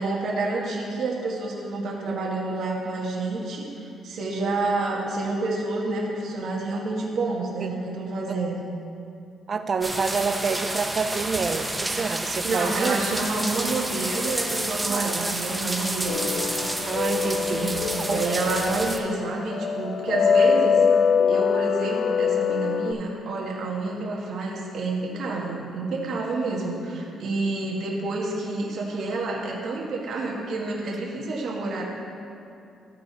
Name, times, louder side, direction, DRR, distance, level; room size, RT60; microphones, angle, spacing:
voice 1, 0.0-8.6 12.4-16.3 17.2-20.8 21.3-31.8, right 3 dB, 65° right, -3 dB, 1.5 m, -29 dB
voice 2, 9.5-13.0 14.8-15.3 16.9-18.3, right 5 dB, 45° right, 9 dB, 0.5 m, -28 dB
sound 1, 9.8-19.0, right 1 dB, 10° right, 0.9 m, -30 dB
sound 2, 16.1-22.9, left 6 dB, 65° left, 0.4 m, -24 dB
14.0 x 4.7 x 4.0 m, 2.6 s
cardioid pair, 90°, 0 cm